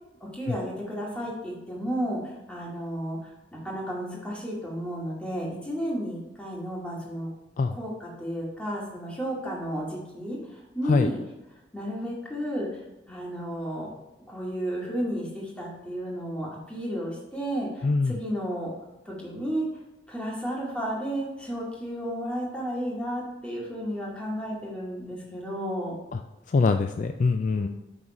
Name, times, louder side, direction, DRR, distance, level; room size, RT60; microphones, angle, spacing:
voice 1, 0.2-7.3 7.7-11.2 11.7-12.7 13.1-13.9 14.3-18.7 19.1-19.7 20.1-25.9 27.5-27.7, equal, 5° left, -4 dB, 2.1 m, -33 dB
voice 2, 17.8-18.2 26.1-26.2 26.5-27.7, left 4 dB, 45° left, 7 dB, 0.3 m, -23 dB
8.6 x 4.1 x 4.8 m, 1.0 s
head